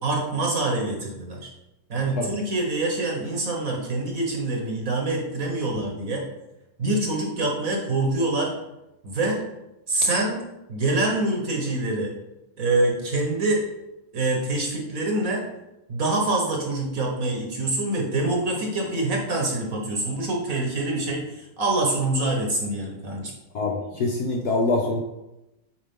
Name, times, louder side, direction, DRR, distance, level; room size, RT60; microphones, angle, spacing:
voice 1, 0.0-1.5 1.9-6.2 6.8-8.5 9.0-9.4 9.9-10.4 10.7-12.1 12.6-13.6 14.1-15.4 15.9-23.3, right 2 dB, 45° right, 0 dB, 1.4 m, -25 dB
voice 2, 23.5-25.0, left 2 dB, 60° left, 0 dB, 1.1 m, -24 dB
8.4 x 4.7 x 3.7 m, 0.94 s
omnidirectional pair, 2.3 m